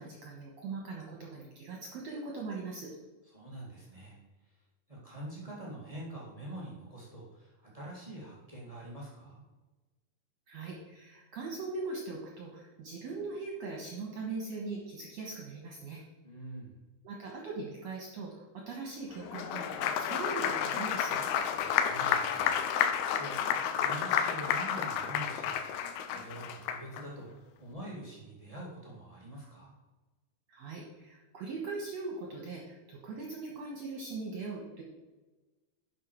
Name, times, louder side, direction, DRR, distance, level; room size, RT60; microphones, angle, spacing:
voice 1, 0.0-2.9 10.5-16.0 17.0-21.3 30.5-34.8, right 3 dB, 55° right, 0 dB, 2.0 m, -40 dB
voice 2, 3.3-4.2 4.9-9.4 16.2-16.7 21.6-22.6 23.2-29.7, right 1 dB, 75° right, -5 dB, 0.3 m, -45 dB
Applause, 19.2-27.0, left 8 dB, 85° left, 2.7 m, -31 dB
11.0 x 6.0 x 4.6 m, 1.2 s
omnidirectional pair, 4.5 m